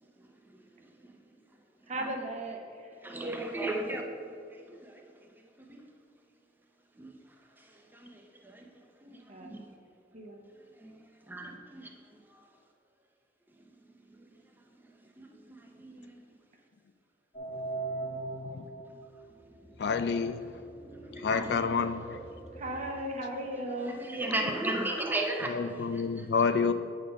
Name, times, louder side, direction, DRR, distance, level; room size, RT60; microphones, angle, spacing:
voice 1, 1.9-3.0 9.3-9.6 10.1-10.4 22.5-24.0, right 1 dB, 40° right, 2 dB, 0.9 m, -36 dB
voice 2, 3.0-4.0 4.5-5.0 5.6-5.8 7.0-7.1 7.9-8.6 9.0-9.6 10.8-11.9 15.2-16.2 20.9-21.6 22.0-22.2 23.9-25.5 25.9-26.0, right 1 dB, 10° right, 2 dB, 0.7 m, -36 dB
sound 1, 17.3-22.8, right 2 dB, 40° left, 1.2 m, -41 dB
voice 3, 19.8-20.5 21.2-22.2 25.5-26.7, left 5 dB, 65° left, 11 dB, 0.4 m, -29 dB
8.2 x 4.1 x 5.2 m, 2.3 s
head